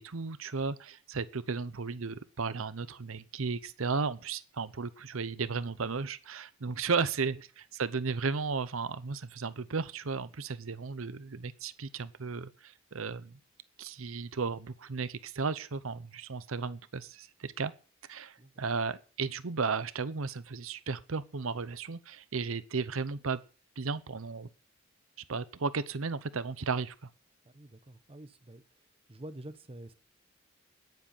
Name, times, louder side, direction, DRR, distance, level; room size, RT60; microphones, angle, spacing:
voice 1, 0.0-13.4 13.8-17.7 18.1-23.4 23.8-24.5 25.3-27.1, right 4 dB, 75° right, 0.8 m, -34 dB
voice 2, 27.4-28.6 29.1-29.9, right 1 dB, 30° right, 1.0 m, -47 dB
10.0 x 9.2 x 8.9 m
head